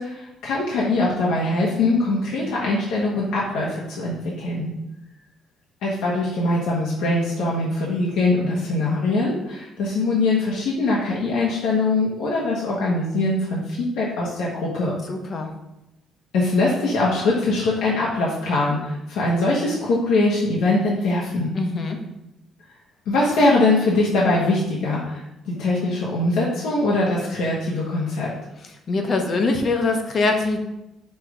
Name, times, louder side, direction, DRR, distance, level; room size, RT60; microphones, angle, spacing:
voice 1, 0.0-4.7 5.8-14.9 16.3-21.5 23.1-28.3, left 2 dB, 90° left, -5 dB, 1.3 m, -22 dB
voice 2, 15.1-15.5 21.5-22.0 28.9-30.6, left 3 dB, 30° left, 4 dB, 0.7 m, -23 dB
6.0 x 3.4 x 5.0 m, 0.90 s
cardioid pair, 180°, 0 cm